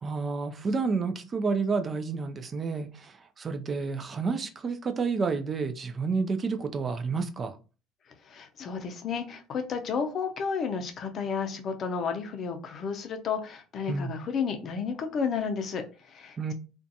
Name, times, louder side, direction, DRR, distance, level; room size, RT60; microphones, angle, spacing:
voice 1, 0.0-3.1 3.4-7.6 13.9-14.1 16.4-16.5, right 4 dB, 35° right, 0.3 m, -30 dB
voice 2, 8.3-16.5, left 6 dB, 45° left, 0.5 m, -32 dB
2.5 x 2.2 x 2.6 m
supercardioid pair, 85°, 0 cm